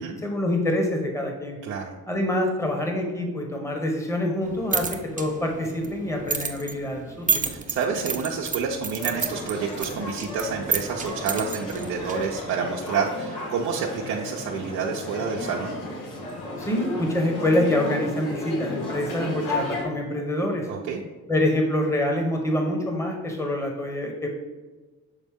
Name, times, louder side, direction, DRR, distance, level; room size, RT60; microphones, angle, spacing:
voice 1, 0.2-1.6 2.1-7.5 16.6-20.7 21.3-24.3, left 1 dB, 10° left, 2 dB, 1.1 m, -26 dB
voice 2, 1.6-1.9 7.5-15.8 20.7-21.0, right 6 dB, 85° right, -2 dB, 0.7 m, -29 dB
sound 1, 4.4-12.5, right 5 dB, 25° right, 0.7 m, -31 dB
sound 2, 9.0-19.8, left 2 dB, 85° left, 1.8 m, -34 dB
7.2 x 4.0 x 3.6 m, 1.3 s
cardioid pair, 90°, 30 cm